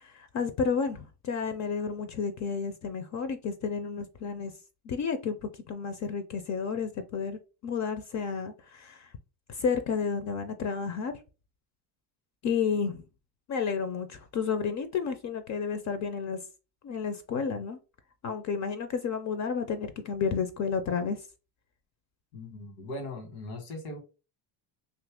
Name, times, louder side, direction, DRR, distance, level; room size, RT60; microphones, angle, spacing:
voice 1, 0.0-4.5 4.9-9.1 9.5-11.1 12.4-13.0 13.5-16.4 16.8-17.8 18.2-21.2, left 6 dB, 35° left, 0.4 m, -31 dB
voice 2, 22.3-24.0, left 2 dB, 85° left, 1.3 m, -39 dB
2.7 x 2.5 x 3.5 m
supercardioid pair, 85°, 50 cm